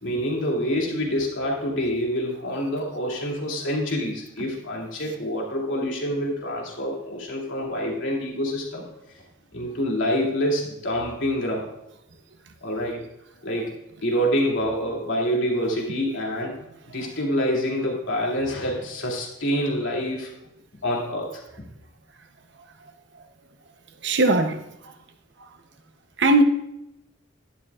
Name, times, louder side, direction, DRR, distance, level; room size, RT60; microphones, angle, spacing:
voice 1, 0.0-8.9 9.5-11.6 12.6-13.0 13.4-13.7 14.0-16.6 16.9-20.3 20.8-21.4, equal, 90° left, 2.8 m, -26 dB
voice 2, 24.0-24.9 25.4-25.5 26.2-26.4, right 2 dB, 65° right, 0.9 m, -20 dB
11.5 x 11.5 x 2.5 m
head